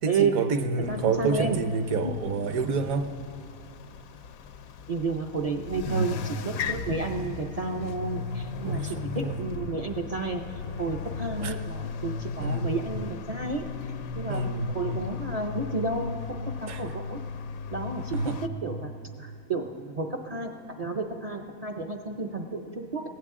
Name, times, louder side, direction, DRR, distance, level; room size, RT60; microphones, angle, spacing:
voice 1, 0.0-3.1 5.9-6.2 8.6-9.4 11.4-11.6 12.4-12.7 14.3-14.8 16.7-16.9 18.1-18.5, right 4 dB, 70° right, 8 dB, 1.2 m, -28 dB
sound 1, 0.8-18.5, left 6 dB, 70° left, 1.0 m, -37 dB
voice 2, 0.9-1.6 4.9-10.4 10.8-13.7 14.1-14.5 14.7-17.2 17.7-18.3 18.6-18.9 19.2-23.0, right 3 dB, 50° right, 4 dB, 0.4 m, -31 dB
21.5 x 16.5 x 3.7 m, 2.7 s
omnidirectional pair, 1.6 m